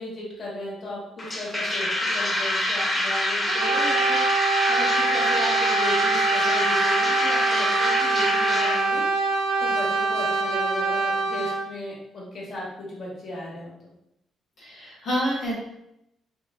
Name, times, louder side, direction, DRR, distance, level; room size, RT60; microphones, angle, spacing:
voice 1, 0.0-13.7, left 1 dB, 50° left, -5 dB, 1.2 m, -35 dB
sound 1, 1.2-8.8, left 1 dB, 25° left, 0.7 m, -25 dB
Brass instrument, 3.5-11.7, right 3 dB, 80° right, 0.5 m, -24 dB
voice 2, 14.6-15.5, equal, 70° left, -6 dB, 1.1 m, -27 dB
3.0 x 2.8 x 2.5 m, 0.82 s
cardioid pair, 90°, 0 cm